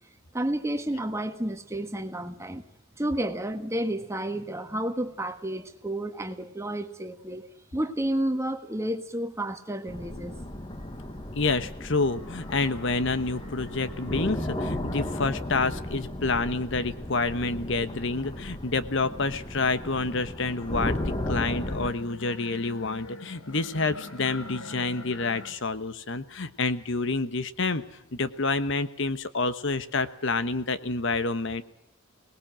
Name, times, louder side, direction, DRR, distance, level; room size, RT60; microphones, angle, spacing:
voice 1, 0.3-2.6 3.0-10.3, right 1 dB, 15° right, 7 dB, 1.5 m, -31 dB
sound 1, 9.9-21.9, left 1 dB, 20° left, 1.4 m, -35 dB
voice 2, 11.3-27.8 28.1-31.6, left 3 dB, 60° left, 12 dB, 1.1 m, -28 dB
sound 2, 11.9-15.6 16.0-18.3 18.8-25.8 26.1-26.8 27.2-28.2, left 2 dB, 80° left, 2.4 m, -46 dB
23.0 x 19.5 x 7.5 m, 0.80 s
head